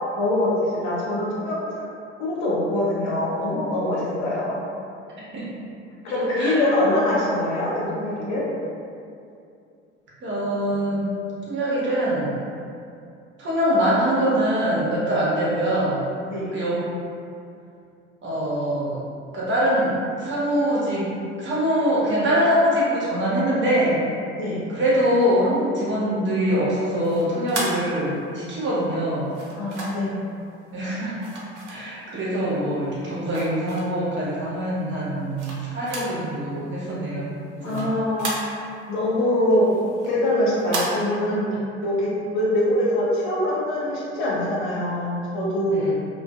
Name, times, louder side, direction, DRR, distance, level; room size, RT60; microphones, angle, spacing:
voice 1, 0.2-1.6 2.2-4.6 6.0-8.5 16.3-16.6 24.4-24.6 29.6-30.1 37.6-38.3 38.9-39.7 40.1-41.5 41.8-45.9, left 1 dB, 50° left, -7 dB, 0.7 m, -23 dB
voice 2, 10.2-11.1 11.5-12.3 13.4-16.0 16.5-16.8 18.2-19.0 19.3-21.1 21.4-24.0 24.7-29.3 30.7-31.2 31.7-37.3 37.6-37.9 45.7-45.9, equal, 35° right, -7 dB, 0.8 m, -23 dB
sound 1, 27.0-28.5 29.3-30.2 31.2-32.3 32.7-34.1 34.6-36.3 36.5-36.6 37.0-38.9 39.3-40.9, right 2 dB, 80° right, 0.5 m, -33 dB
2.5 x 2.3 x 2.3 m, 2.5 s
figure-of-eight pair, 60°, 35 cm